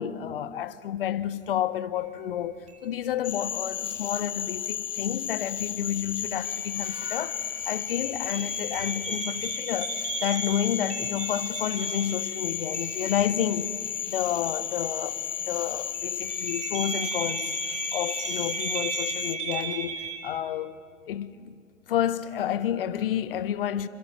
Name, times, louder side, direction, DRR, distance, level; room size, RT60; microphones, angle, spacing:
voice 1, 0.0-2.6 2.8-13.7 14.0-15.2 15.5-17.6 17.9-20.8 21.1-21.5 21.9-23.9, left 10 dB, 45° left, 1.3 m, -30 dB
sound 1, 2.0-2.1 2.7-3.3 6.4-15.6 15.9-20.2, right 6 dB, 15° right, 2.9 m, -37 dB
Cricket / Frog, 3.2-19.4, left 9 dB, 65° left, 0.7 m, -33 dB
28.5 x 27.5 x 7.6 m
figure-of-eight pair, 120°, 40 cm